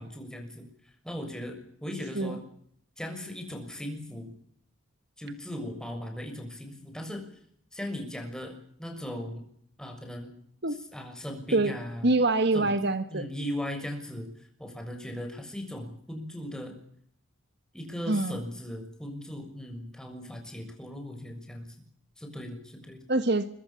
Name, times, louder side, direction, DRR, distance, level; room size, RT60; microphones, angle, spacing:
voice 1, 0.0-2.4 3.0-4.3 5.2-7.3 7.7-8.5 8.8-9.4 9.8-10.3 10.9-12.1 12.5-12.7 13.1-16.8 17.7-21.7 22.2-23.0, left 1 dB, 5° left, 4 dB, 6.5 m, -38 dB
voice 2, 12.0-13.2 18.1-18.4 23.1-23.5, right 2 dB, 55° right, 11 dB, 1.6 m, -25 dB
25.5 x 24.0 x 7.2 m, 0.67 s
head